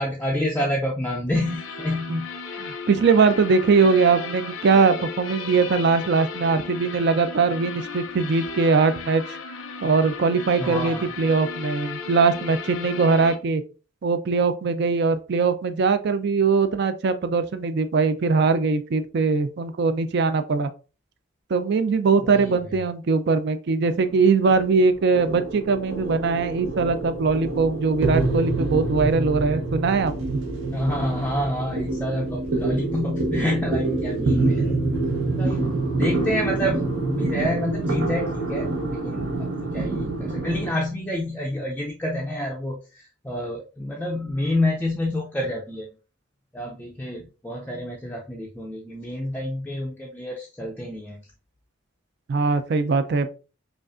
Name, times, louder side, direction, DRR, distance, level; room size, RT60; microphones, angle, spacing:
voice 1, 0.0-2.3 10.6-11.1 22.2-22.8 28.9-29.2 30.7-34.8 35.4-45.9 46.5-51.2, left 1 dB, 10° left, 0.4 m, -28 dB
sound 1, 1.3-13.3, left 5 dB, 85° left, 0.6 m, -35 dB
voice 2, 2.6-9.2 9.8-13.6 14.0-20.7 21.5-30.4 52.3-53.3, right 4 dB, 55° right, 0.4 m, -21 dB
sound 2, 23.9-40.7, right 2 dB, 80° right, 1.0 m, -26 dB
4.9 x 2.4 x 2.4 m
head